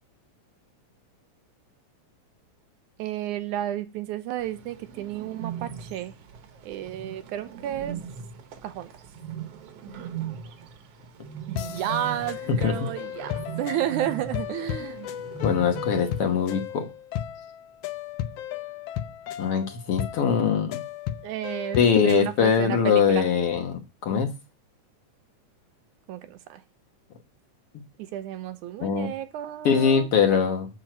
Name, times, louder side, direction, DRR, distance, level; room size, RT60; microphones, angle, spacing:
voice 1, 3.0-6.1 6.6-8.0 8.6-8.9 11.5-15.0 21.2-23.3 26.1-26.6 28.1-30.1, right 12 dB, 90° right, 10 dB, 2.3 m, -32 dB
Bird, 4.4-16.5, right 8 dB, 60° right, 2.0 m, -39 dB
sound 1, 11.6-22.3, left 11 dB, 75° left, 1.4 m, -35 dB
voice 2, 15.4-16.9 19.4-20.8 21.8-24.3 28.8-29.1 29.6-30.7, left 6 dB, 60° left, 5 dB, 1.9 m, -22 dB
7.6 x 7.2 x 4.4 m, 0.28 s
omnidirectional pair, 3.5 m